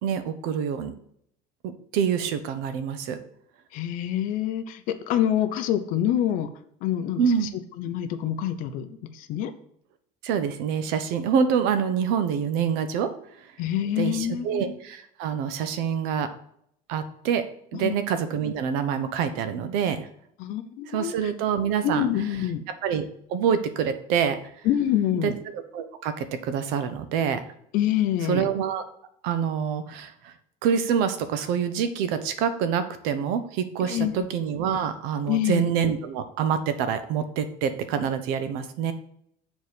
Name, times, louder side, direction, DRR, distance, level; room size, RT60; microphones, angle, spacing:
voice 1, 0.0-0.9 1.6-3.2 7.2-7.5 10.2-13.1 14.0-16.3 16.9-17.4 17.7-20.1 20.9-22.1 22.8-24.4 25.2-27.4 28.3-28.8 29.2-30.3 30.6-38.9, right 7 dB, 70° right, 10 dB, 1.0 m, -26 dB
voice 2, 3.7-6.5 6.8-7.2 7.8-9.5 13.6-14.8 17.7-17.9 20.4-21.2 21.8-22.6 24.6-25.3 27.7-28.5 33.8-34.1 35.3-35.7, left 11 dB, 55° left, 9 dB, 0.8 m, -26 dB
7.2 x 4.1 x 6.7 m, 0.68 s
cardioid pair, 165°, 16 cm